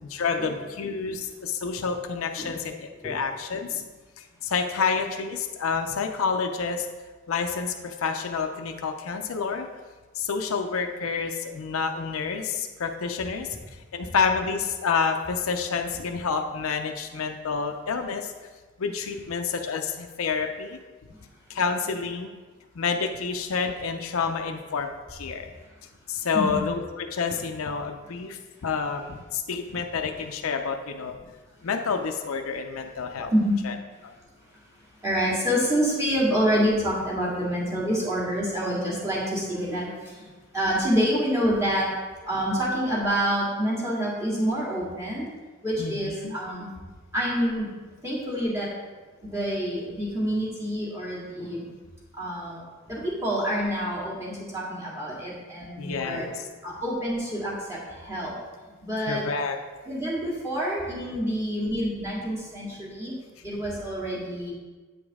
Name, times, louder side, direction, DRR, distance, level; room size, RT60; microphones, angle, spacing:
voice 1, 0.0-3.8 4.4-6.9 7.3-9.7 10.1-13.5 13.9-18.3 18.8-20.8 21.5-22.3 22.8-25.5 26.1-31.1 31.6-33.3 33.7-33.8 34.0-34.1 45.8-46.3 55.8-56.3 59.1-59.6, left 5 dB, 90° left, 5 dB, 0.5 m, -29 dB
voice 2, 35.0-40.3 40.5-41.9 42.3-45.3 45.6-46.7 47.1-47.7 48.0-48.7 49.2-51.6 52.2-52.6 52.9-56.3 56.6-58.3 58.8-59.3 59.9-63.1 63.4-64.5, equal, 15° right, -7 dB, 2.0 m, -27 dB
8.7 x 5.1 x 3.6 m, 1.3 s
head